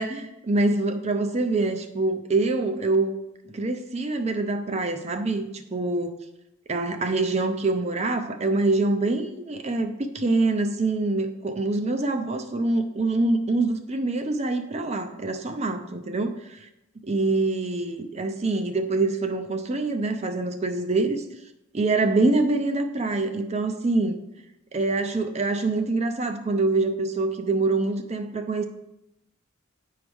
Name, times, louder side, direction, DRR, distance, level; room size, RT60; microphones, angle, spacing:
voice 1, 0.0-3.1 3.5-6.1 6.7-16.7 17.0-21.2 21.7-24.2 24.7-28.7, right 2 dB, 30° right, 7 dB, 0.5 m, -25 dB
9.7 x 4.7 x 3.5 m, 0.89 s
head